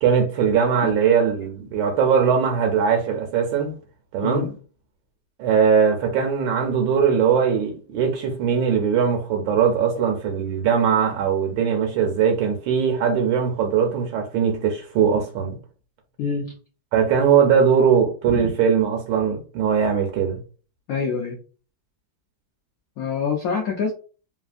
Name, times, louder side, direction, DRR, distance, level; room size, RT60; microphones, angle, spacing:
voice 1, 0.0-3.7 4.1-4.5 5.4-15.6 16.9-20.4, right 7 dB, 80° right, 1.3 m, -20 dB
voice 2, 4.2-4.5 16.2-16.5 18.3-18.5 20.9-21.4 23.0-23.9, left 5 dB, 80° left, 0.8 m, -26 dB
3.3 x 2.4 x 2.4 m
omnidirectional pair, 2.1 m